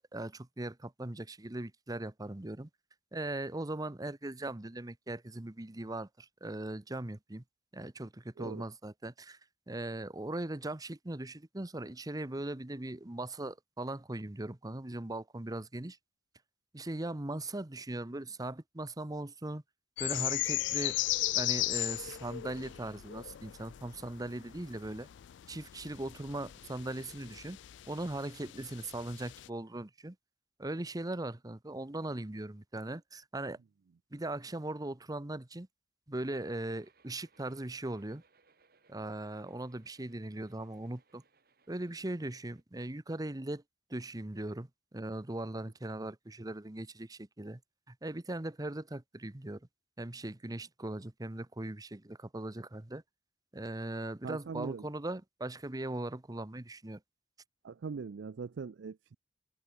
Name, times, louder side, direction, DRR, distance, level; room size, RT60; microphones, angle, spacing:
voice 1, 0.0-2.7 3.1-7.4 7.7-9.4 9.7-16.0 16.7-19.6 20.0-21.0 21.3-25.1 25.5-27.6 27.9-30.2 30.6-33.6 34.1-35.7 36.1-38.2 38.9-41.2 41.7-43.6 43.9-47.6 47.9-49.6 50.0-53.0 53.5-57.0, right 1 dB, 20° right, 0.9 m, -39 dB
sound 1, 20.0-29.5, left 17 dB, 85° left, 0.3 m, -37 dB
sound 2, 36.1-42.6, right 4 dB, 60° right, 7.4 m, -69 dB
voice 2, 54.2-54.9 57.6-59.2, right 5 dB, 80° right, 0.4 m, -41 dB
head